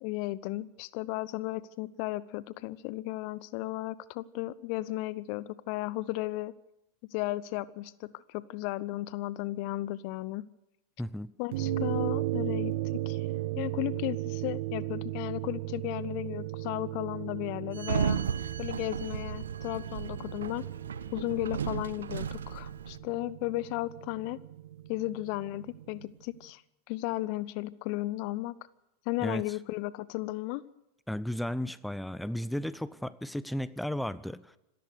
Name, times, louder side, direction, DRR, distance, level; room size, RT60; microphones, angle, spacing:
voice 1, 0.0-6.5 7.1-10.5 11.4-12.7 13.1-13.3 13.6-18.2 18.6-20.7 21.1-24.4 24.9-26.6 26.9-28.5 29.1-30.6, left 17 dB, 45° left, 20 dB, 0.7 m, -35 dB
voice 2, 11.0-11.3 29.2-29.4 31.1-34.4, left 1 dB, ahead, 18 dB, 0.8 m, -34 dB
sound 1, 11.5-26.1, right 15 dB, 50° right, 1.6 m, -36 dB
Sliding door, 17.7-23.0, right 7 dB, 65° right, 1.0 m, -34 dB
26.5 x 14.5 x 6.6 m, 0.90 s
figure-of-eight pair, 90°, 0 cm